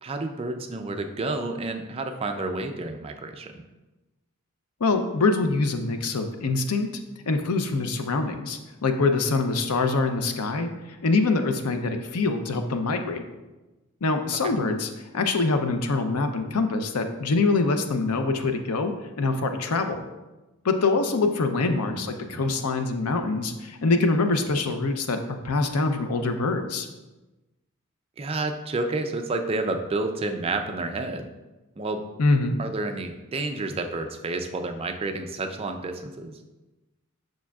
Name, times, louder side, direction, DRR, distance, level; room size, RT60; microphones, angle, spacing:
voice 1, 0.0-3.6 14.4-14.5 21.9-22.5 28.2-31.3 31.8-32.1 32.6-36.4, right 2 dB, 25° right, 6 dB, 0.4 m, -30 dB
voice 2, 4.8-6.9 7.3-13.2 14.0-20.0 20.6-26.9 32.2-32.6, left 3 dB, 90° left, 7 dB, 0.6 m, -24 dB
7.3 x 6.2 x 2.3 m, 1.1 s
head